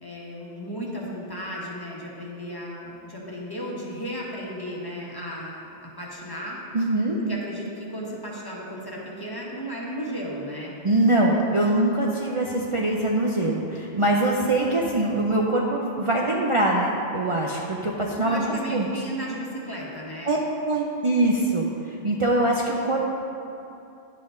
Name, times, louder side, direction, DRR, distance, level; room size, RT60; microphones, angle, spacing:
voice 1, 0.0-6.6 7.3-10.7 18.2-20.3, equal, 20° left, -4 dB, 1.3 m, -34 dB
voice 2, 6.7-7.2 10.8-18.9 20.3-23.0, right 2 dB, 35° right, -3 dB, 0.7 m, -23 dB
10.5 x 7.6 x 3.8 m, 2.7 s
omnidirectional pair, 1.0 m